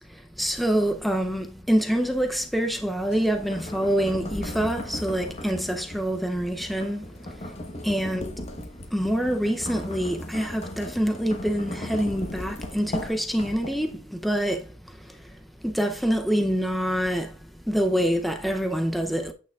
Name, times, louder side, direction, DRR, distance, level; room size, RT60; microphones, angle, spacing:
voice 1, 0.0-8.3 8.9-19.3, equal, ahead, 0.5 m, -26 dB
sound 1, 3.0-14.0, left 1 dB, 30° left, 0.9 m, -37 dB
8.9 x 5.9 x 2.3 m
head